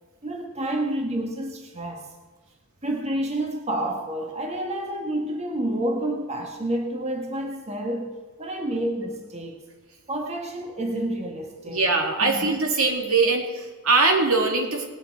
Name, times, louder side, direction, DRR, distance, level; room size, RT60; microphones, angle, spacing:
voice 1, 0.2-2.1 2.8-8.1 8.4-9.6 10.1-11.9 12.2-12.5, right 1 dB, 30° right, 2 dB, 1.4 m, -29 dB
voice 2, 11.6-14.9, right 3 dB, 75° right, 1 dB, 2.6 m, -22 dB
19.0 x 9.8 x 4.6 m, 1.3 s
head